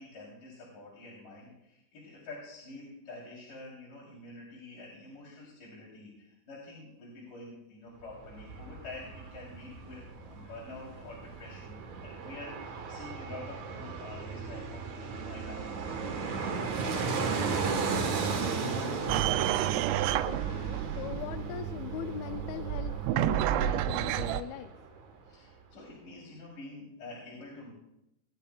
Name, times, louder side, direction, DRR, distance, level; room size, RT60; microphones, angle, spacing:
voice 1, 0.0-18.5 25.2-27.7, left 2 dB, 50° left, -5 dB, 4.7 m, -47 dB
Fixed-wing aircraft airplane, 8.0-25.0 25.3-25.4, right 5 dB, 60° right, 2.2 m, -36 dB
sound 1, 19.1-24.4, right 12 dB, 90° right, 2.7 m, -30 dB
voice 2, 20.3-24.8, left 12 dB, 80° left, 8 dB, 2.2 m, -41 dB
26.0 x 11.0 x 2.4 m, 0.82 s
omnidirectional pair, 4.8 m